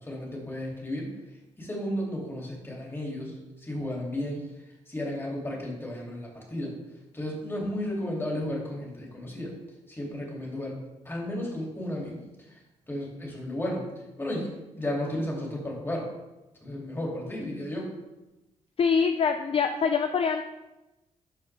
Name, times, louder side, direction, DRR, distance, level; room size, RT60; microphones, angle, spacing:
voice 1, 0.0-1.1 1.6-4.5 4.9-6.7 7.1-9.5 9.9-10.8 11.0-12.6 12.9-13.9 14.2-16.1 16.6-17.9, left 1 dB, 15° left, -2 dB, 2.7 m, -33 dB
voice 2, 18.8-20.4, left 6 dB, 45° left, 7 dB, 0.4 m, -24 dB
12.5 x 4.5 x 3.4 m, 1.0 s
cardioid pair, 85°, 13 cm